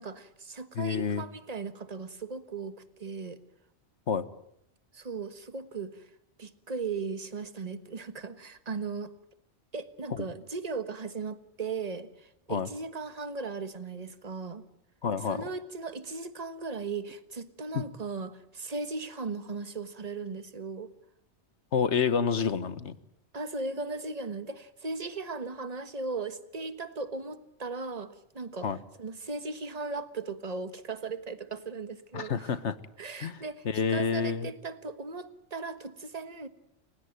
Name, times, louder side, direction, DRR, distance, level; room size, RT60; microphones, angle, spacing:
voice 1, 0.0-3.4 4.9-6.0 6.4-9.1 9.7-14.6 15.1-20.9 23.3-32.6 33.0-36.5, right 4 dB, 35° right, 11 dB, 1.5 m, -37 dB
voice 2, 0.7-1.2 4.1-4.2 12.5-12.7 15.0-15.4 17.7-17.8 21.7-22.9 28.6-28.8 32.1-32.7 33.2-33.4 33.6-34.5, left 6 dB, 70° left, 14 dB, 1.5 m, -28 dB
30.0 x 17.0 x 9.2 m, 0.74 s
omnidirectional pair, 1.2 m